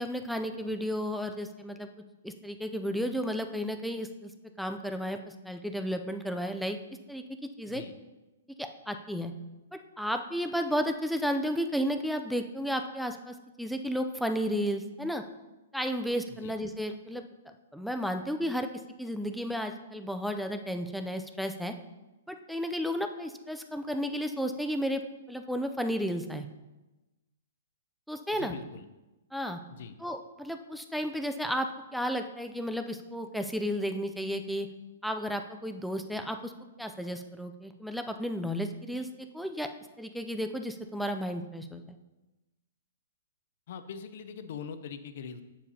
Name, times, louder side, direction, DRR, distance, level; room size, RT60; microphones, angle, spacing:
voice 1, 0.0-1.9 2.2-4.3 4.6-6.8 7.1-7.2 7.6-7.8 8.6-9.3 9.7-15.2 15.7-17.2 17.7-18.7 19.0-21.7 22.3-25.0 25.3-26.5 28.1-28.6 29.3-29.6 30.0-34.7 35.0-36.5 36.8-39.7 40.0-42.0, equal, ahead, 6 dB, 0.3 m, -33 dB
voice 2, 28.4-28.9 29.7-29.9 43.7-45.4, left 6 dB, 50° left, 10 dB, 0.6 m, -42 dB
8.6 x 7.3 x 2.7 m, 1.1 s
hypercardioid pair, 165°, 0 cm